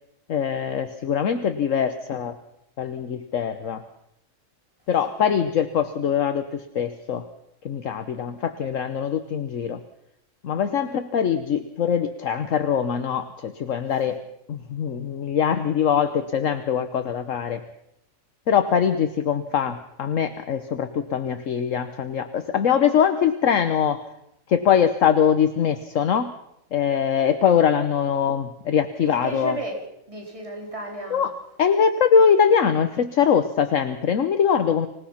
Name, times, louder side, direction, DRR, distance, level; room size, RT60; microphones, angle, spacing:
voice 1, 0.3-2.4 2.8-3.8 4.9-7.3 7.6-9.8 10.4-14.2 14.5-17.6 18.5-24.1 24.5-26.4 26.7-29.6 31.1-34.9, left 7 dB, 65° left, 9 dB, 1.3 m, -22 dB
voice 2, 29.0-29.8 30.1-31.3, right 2 dB, 20° right, 0 dB, 4.3 m, -33 dB
25.5 x 19.0 x 5.8 m, 0.78 s
omnidirectional pair, 1.5 m